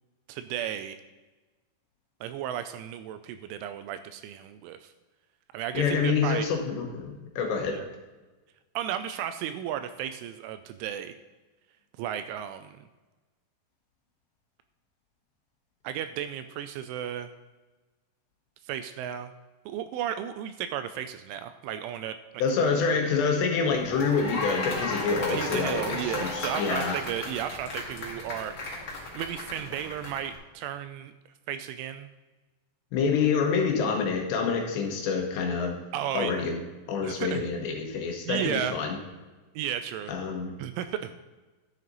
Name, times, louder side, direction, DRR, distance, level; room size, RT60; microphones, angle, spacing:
voice 1, 0.3-1.0 2.2-4.9 5.5-6.5 7.6-7.9 8.8-11.1 12.0-12.8 15.8-17.3 18.6-19.3 19.7-22.2 22.9-23.0 23.3-23.5 25.3-28.8 29.1-31.1 31.5-32.1 35.9-36.4 37.0-37.5 38.3-38.8 39.6-40.1 40.6-41.1, right 10 dB, 85° right, 10 dB, 2.8 m, -34 dB
voice 2, 5.7-7.8 22.4-26.3 26.6-27.0 32.9-35.8 36.1-36.6 36.9-39.0 40.1-40.6, left 5 dB, 70° left, 2 dB, 2.9 m, -27 dB
sound 1, 23.7-30.3, left 2 dB, 55° left, 1.3 m, -35 dB
11.0 x 7.6 x 4.0 m, 1.2 s
omnidirectional pair, 5.8 m